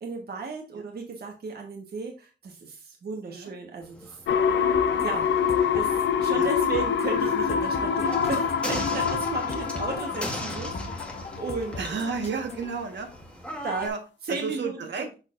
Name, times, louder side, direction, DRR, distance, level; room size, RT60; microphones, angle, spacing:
voice 1, 0.0-4.2 5.0-5.3 5.7-11.8 13.6-13.9 14.3-14.8, right 4 dB, 60° right, 1 dB, 1.3 m, -35 dB
sound 1, 3.8-13.9, equal, 5° left, 1.2 m, -39 dB
sound 2, 4.3-11.9 12.3-12.4, left 7 dB, 80° left, 0.6 m, -26 dB
sound 3, 4.8-12.7, left 3 dB, 35° left, 0.8 m, -41 dB
voice 2, 6.3-6.9 11.8-13.1 13.8-14.0 14.3-15.1, right 5 dB, 75° right, 3 dB, 1.4 m, -33 dB
6.5 x 6.2 x 2.5 m, 0.32 s
wide cardioid pair, 165°, 19 cm